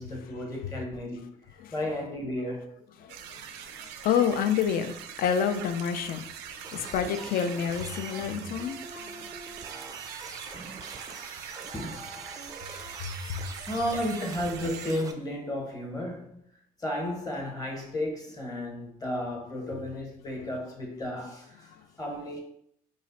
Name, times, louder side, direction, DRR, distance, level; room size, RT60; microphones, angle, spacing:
voice 1, 0.0-2.7 11.7-12.0 12.8-13.2 13.7-16.4 16.8-21.7 22.0-22.4, left 1 dB, 20° left, 0.9 m, -33 dB
voice 2, 3.0-9.3 10.4-10.8 11.5-11.6 12.7-13.5 21.7-21.8, left 7 dB, 60° left, 0.4 m, -30 dB
sound 1, 3.1-14.9, right 9 dB, 85° right, 0.4 m, -43 dB
sound 2, 6.6-15.1, right 4 dB, 20° right, 0.4 m, -44 dB
3.1 x 2.4 x 4.0 m
cardioid pair, 110°, 17 cm